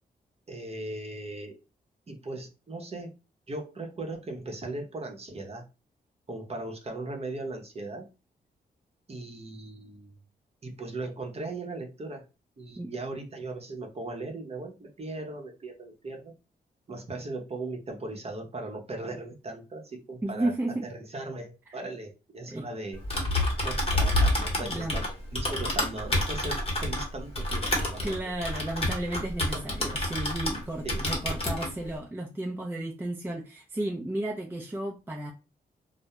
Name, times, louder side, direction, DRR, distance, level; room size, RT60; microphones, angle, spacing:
voice 1, 0.5-1.6 2.1-3.1 3.5-5.6 6.3-8.1 9.1-10.2 10.6-12.2 12.6-16.3 16.9-20.5 20.8-23.4 23.6-28.0 30.8-31.1, right 2 dB, 35° right, 0.7 m, -38 dB
voice 2, 20.2-20.9 21.7-21.8 22.5-22.7 24.6-25.0 28.0-35.3, right 1 dB, 15° right, 0.4 m, -33 dB
Typing, 22.9-30.6 30.9-31.7, left 1 dB, 35° left, 1.0 m, -28 dB
2.2 x 2.0 x 2.8 m
cardioid pair, 70°, 17 cm